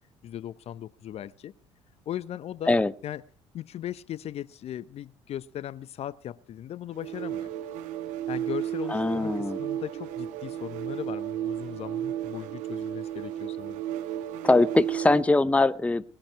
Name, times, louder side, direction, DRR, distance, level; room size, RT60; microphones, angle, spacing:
voice 1, 0.2-1.5 2.1-2.8 3.0-3.2 3.5-7.5 8.3-13.8, left 11 dB, 50° left, 20 dB, 0.7 m, -38 dB
sound 1, 6.9-15.3, right 11 dB, 65° right, 1.1 m, -33 dB
voice 2, 8.9-9.6 14.4-16.0, left 2 dB, 10° left, 18 dB, 0.7 m, -22 dB
20.0 x 13.0 x 4.5 m, 0.37 s
hypercardioid pair, 55°, 14 cm